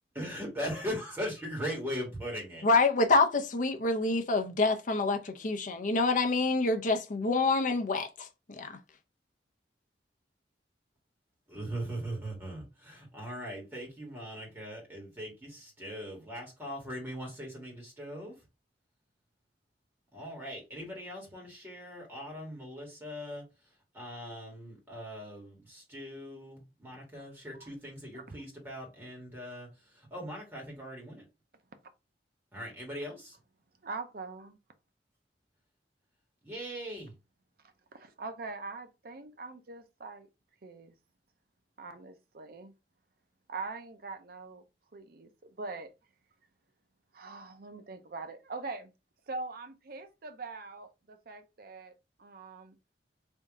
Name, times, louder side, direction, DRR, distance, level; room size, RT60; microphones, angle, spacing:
voice 1, 0.1-2.7 11.5-18.4 20.1-23.4 23.9-31.2 32.5-33.4 36.4-37.1, equal, 10° right, 1.6 m, -40 dB
voice 2, 2.6-8.3, left 3 dB, 45° left, 0.6 m, -26 dB
voice 3, 33.8-34.6 37.9-40.3 40.6-40.9 41.8-42.7 43.5-44.6 44.9-45.9 47.1-48.9 49.3-51.9 52.2-52.7, right 3 dB, 55° right, 0.6 m, -42 dB
3.5 x 2.7 x 3.5 m
head